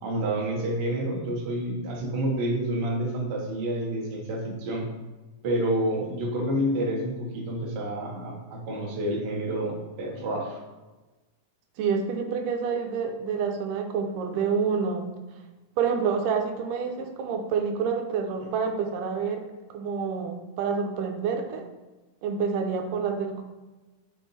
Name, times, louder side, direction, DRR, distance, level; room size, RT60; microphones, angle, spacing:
voice 1, 0.0-4.9 5.4-10.6, right 1 dB, 60° right, -2 dB, 1.1 m, -29 dB
voice 2, 11.8-15.1 15.8-19.4 19.7-21.7 22.2-23.4, right 6 dB, 85° right, 4 dB, 2.2 m, -28 dB
7.0 x 3.6 x 4.0 m, 1.2 s
omnidirectional pair, 3.9 m